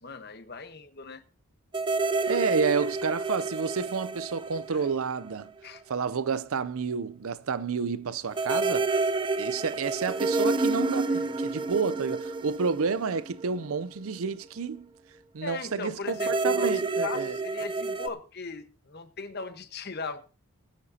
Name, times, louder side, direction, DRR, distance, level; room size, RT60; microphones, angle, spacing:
voice 1, 0.0-1.2 4.7-4.8 5.6-5.8 11.0-11.3 15.4-16.7 17.0-20.2, left 4 dB, 45° left, 1.2 m, -38 dB
sound 1, 1.7-5.5 5.8-5.9 8.3-13.7 16.1-18.1, right 3 dB, 20° right, 0.5 m, -29 dB
voice 2, 2.3-5.5 5.9-8.9 9.4-14.9 15.3-17.4, right 5 dB, 70° right, 0.5 m, -30 dB
20.0 x 9.7 x 2.8 m
head